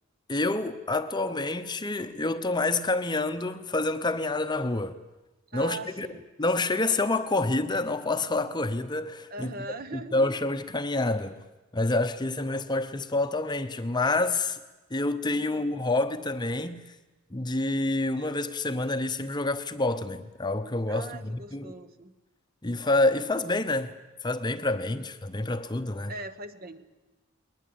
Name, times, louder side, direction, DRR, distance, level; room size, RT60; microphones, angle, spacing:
voice 1, 0.3-5.0 5.5-6.1 6.4-9.5 9.9-11.4 11.7-14.6 14.9-16.8 17.3-21.7 22.6-23.9 24.2-26.1, left 2 dB, 20° left, 0.8 m, -28 dB
voice 2, 5.5-6.3 9.3-10.1 15.4-15.7 20.9-22.1 24.9-25.1 26.1-26.8, right 2 dB, 45° right, 1.2 m, -40 dB
21.0 x 20.5 x 8.7 m
head